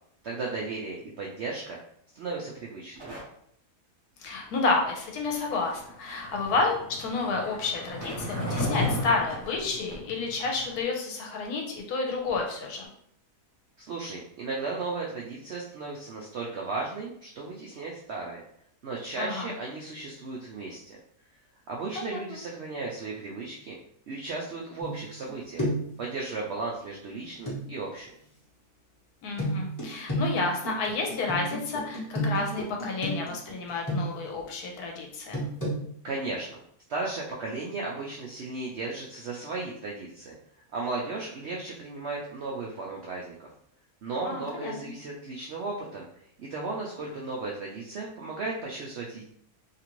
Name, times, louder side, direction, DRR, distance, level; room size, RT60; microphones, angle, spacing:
voice 1, 0.2-1.8 2.1-3.0 13.8-18.4 18.8-21.0 21.7-23.8 24.1-25.7 26.0-28.1 36.0-36.6 36.9-40.4 40.7-43.5 44.0-46.1 46.4-49.3, right 3 dB, 75° right, -2 dB, 0.6 m, -35 dB
sound 1, 3.0-3.2 6.3-6.6 7.1-7.2 7.7-10.0 11.8-11.9 12.2-12.4 12.8-12.9, right 2 dB, 25° right, 0.6 m, -43 dB
voice 2, 4.2-12.9 19.2-19.5 22.0-22.2 29.2-35.4 44.2-44.9, left 3 dB, 75° left, 1 dB, 1.2 m, -30 dB
Skateboard, 5.4-10.8, left 1 dB, 55° left, 1.2 m, -34 dB
sound 2, 24.8-25.3 25.6-26.0 27.5-27.6 29.4-34.4 35.3-35.8, right 1 dB, 15° left, 0.7 m, -31 dB
2.8 x 2.5 x 3.0 m, 0.69 s
omnidirectional pair, 1.7 m